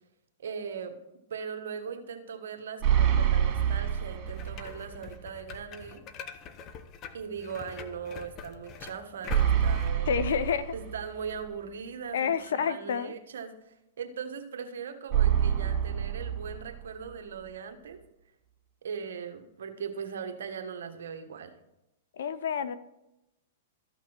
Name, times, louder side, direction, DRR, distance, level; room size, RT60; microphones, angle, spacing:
voice 1, 0.4-1.0 1.3-6.0 7.1-10.1 10.7-18.0 18.8-21.5, right 6 dB, 75° right, 5 dB, 1.2 m, -39 dB
sound 1, 2.8-4.8 5.2-5.3 9.3-11.3 15.1-17.1, right 9 dB, 30° right, 2.0 m, -26 dB
sound 2, 4.3-9.9, left 6 dB, 35° left, 0.8 m, -44 dB
voice 2, 10.1-10.7 12.1-13.1 22.1-22.8, left 7 dB, 75° left, 15 dB, 0.7 m, -29 dB
13.5 x 5.9 x 4.5 m, 0.90 s
hypercardioid pair, 120°, 0 cm